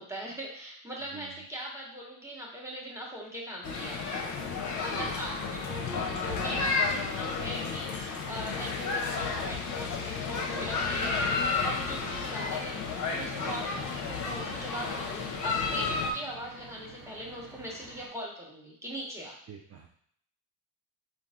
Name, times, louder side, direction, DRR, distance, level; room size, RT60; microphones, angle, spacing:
voice 1, 0.0-4.0 4.8-19.4, equal, 5° right, -2 dB, 1.1 m, -40 dB
sound 1, 3.6-16.1, left 4 dB, 40° left, 0.8 m, -32 dB
sound 2, 7.0-12.5, left 6 dB, 85° left, 0.5 m, -46 dB
sound 3, 12.3-18.1, right 3 dB, 85° right, 1.0 m, -50 dB
voice 2, 19.5-19.9, right 7 dB, 30° right, 1 dB, 0.5 m, -47 dB
3.8 x 2.6 x 2.4 m, 0.64 s
supercardioid pair, 70°, 48 cm